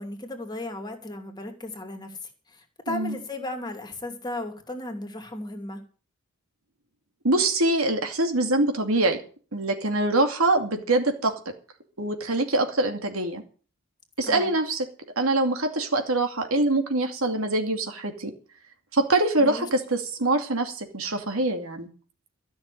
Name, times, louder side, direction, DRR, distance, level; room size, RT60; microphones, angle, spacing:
voice 1, 0.0-2.2 2.5-5.8 14.3-14.5 19.4-19.7, left 1 dB, 20° left, 4 dB, 2.6 m, -35 dB
voice 2, 2.9-3.2 7.2-9.2 9.5-11.4 12.0-13.4 14.2-14.9 15.2-18.3 18.9-21.9, right 2 dB, 80° right, 5 dB, 2.4 m, -24 dB
13.5 x 6.4 x 9.9 m, 0.40 s
head